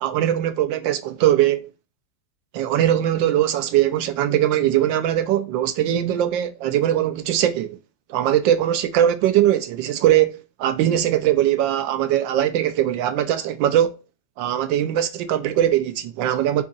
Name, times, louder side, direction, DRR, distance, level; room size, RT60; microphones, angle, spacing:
voice 1, 0.0-1.7 2.5-7.8 8.1-14.0 14.4-16.6, right 11 dB, 90° right, 1.3 m, -21 dB
4.6 x 4.1 x 2.5 m
omnidirectional pair, 2.0 m